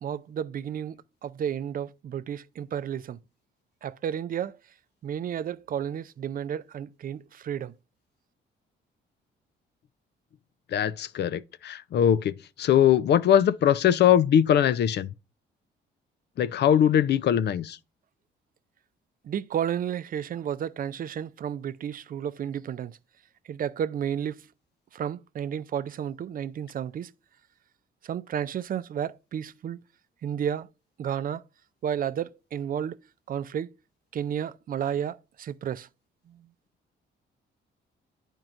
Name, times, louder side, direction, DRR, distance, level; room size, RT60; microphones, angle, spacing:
voice 1, 0.0-3.2 3.8-4.5 5.0-7.7 19.3-22.9 23.5-24.4 24.9-27.1 28.0-29.8 30.2-30.7 31.0-31.4 31.8-33.0 33.3-33.7 34.1-35.9, right 9 dB, 45° right, 0.4 m, -32 dB
voice 2, 10.7-15.1 16.4-17.8, left 9 dB, 60° left, 0.5 m, -21 dB
10.5 x 4.5 x 2.5 m
cardioid pair, 90°, 20 cm